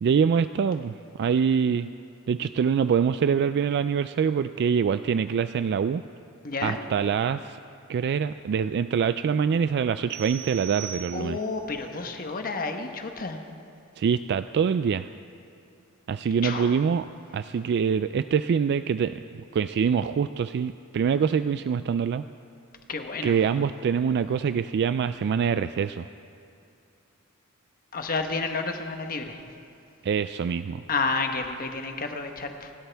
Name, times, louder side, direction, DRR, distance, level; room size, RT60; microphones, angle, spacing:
voice 1, 0.0-1.9 2.3-6.0 6.6-7.6 7.9-11.4 14.0-15.1 16.1-17.0 17.3-22.2 23.2-26.1 30.0-30.8, right 6 dB, 50° right, 12 dB, 0.3 m, -25 dB
voice 2, 6.4-6.8 11.1-13.4 16.4-16.8 22.9-23.4 27.9-29.4 30.9-32.7, left 4 dB, 40° left, 5 dB, 1.1 m, -30 dB
sound 1, 10.1-11.6, right 10 dB, 75° right, 2.5 m, -40 dB
28.5 x 12.5 x 3.5 m, 2.6 s
head